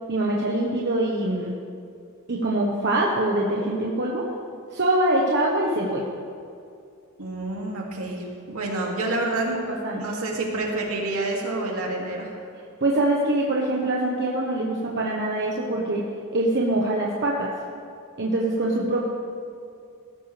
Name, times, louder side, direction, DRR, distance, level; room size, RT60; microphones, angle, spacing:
voice 1, 0.1-1.5 2.3-4.3 4.7-6.0 9.8-10.0 12.8-16.0 16.3-17.5 18.2-19.1, right 1 dB, 50° right, -2 dB, 1.2 m, -24 dB
voice 2, 7.2-9.6 9.9-12.4, right 2 dB, 75° right, -2 dB, 2.6 m, -28 dB
17.5 x 13.5 x 3.4 m, 2.4 s
head